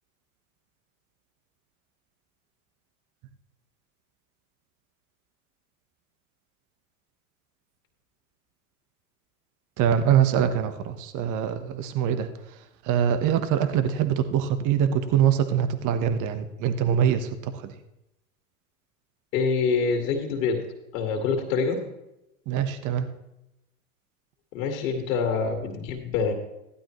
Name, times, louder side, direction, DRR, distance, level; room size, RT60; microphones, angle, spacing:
voice 1, 9.8-12.3 12.8-17.7 22.5-23.1, right 9 dB, 45° right, 9 dB, 1.2 m, -24 dB
voice 2, 19.3-20.6 20.9-21.8 24.5-26.3, left 5 dB, 70° left, 3 dB, 2.1 m, -25 dB
15.5 x 11.0 x 3.1 m, 0.89 s
hypercardioid pair, 95°, 42 cm